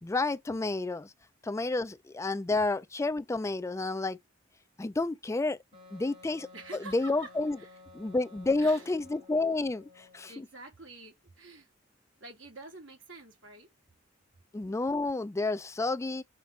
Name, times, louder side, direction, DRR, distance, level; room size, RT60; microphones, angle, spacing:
voice 1, 0.0-1.1 1.4-4.2 4.8-5.6 5.9-6.5 6.9-7.6 7.9-10.3 14.5-16.2, left 2 dB, 15° left, 0.3 m, -30 dB
Wind instrument woodwind instrument, 5.7-10.4, left 3 dB, 35° right, 2.4 m, -54 dB
voice 2, 6.5-7.3 7.6-7.7 8.6-8.9 10.3-11.7 12.2-13.7, right 2 dB, 65° right, 2.9 m, -47 dB
5.8 x 3.4 x 5.8 m
head